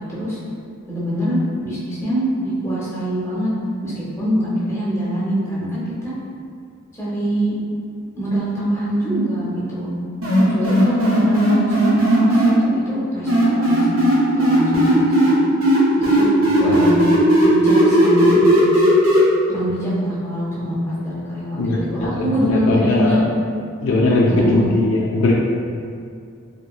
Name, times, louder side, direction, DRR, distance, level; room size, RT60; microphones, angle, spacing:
voice 1, 0.9-3.5 3.8-6.1 6.9-7.5 8.2-9.9 10.5-14.0 14.4-15.3 16.0-16.3 16.6-17.1 17.4-18.6 19.5-23.2 24.3-24.7, equal, 15° left, -8 dB, 0.6 m, -23 dB
sound 1, 10.2-12.5 13.3-15.3 15.6-19.2, right 1 dB, 80° right, 0.7 m, -15 dB
voice 2, 21.6-23.2 23.8-25.3, left 2 dB, 70° left, -3 dB, 0.4 m, -19 dB
2.8 x 2.6 x 2.3 m, 2.3 s
head